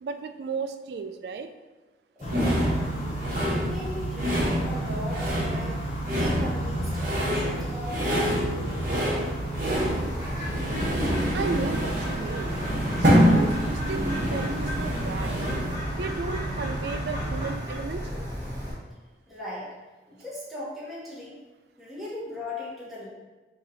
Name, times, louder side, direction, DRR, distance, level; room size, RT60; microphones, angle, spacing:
voice 1, 0.0-1.5 11.3-12.5 13.0-15.4 15.9-18.1, right 4 dB, 65° right, 8 dB, 0.3 m, -34 dB
voice 2, 2.1-3.1 3.5-8.7 19.3-19.7 20.1-21.4 21.8-23.1, left 1 dB, ahead, -8 dB, 1.0 m, -39 dB
sound 1, 2.2-17.5, right 1 dB, 35° left, 0.7 m, -33 dB
sound 2, 2.3-15.8, equal, 50° right, 1.0 m, -27 dB
Bird, 9.7-18.7, equal, 25° right, 1.0 m, -35 dB
3.9 x 2.8 x 4.0 m, 1.2 s
head